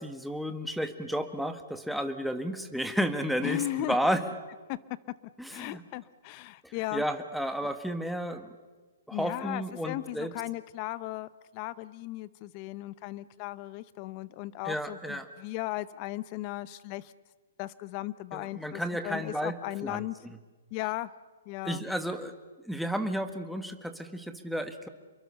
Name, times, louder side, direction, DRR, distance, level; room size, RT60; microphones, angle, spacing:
voice 1, 0.0-4.2 5.4-5.8 6.6-8.5 9.1-10.3 14.6-15.3 18.3-19.5 19.8-20.4 21.6-22.3 22.6-24.9, equal, ahead, 7 dB, 1.5 m, -32 dB
voice 2, 3.4-4.0 4.7-4.8 5.5-7.0 9.1-17.1 17.6-20.1 20.7-21.1 21.5-21.8, left 17 dB, 35° left, 18 dB, 0.8 m, -36 dB
28.0 x 23.0 x 6.9 m, 1.3 s
hypercardioid pair, 145°, 0 cm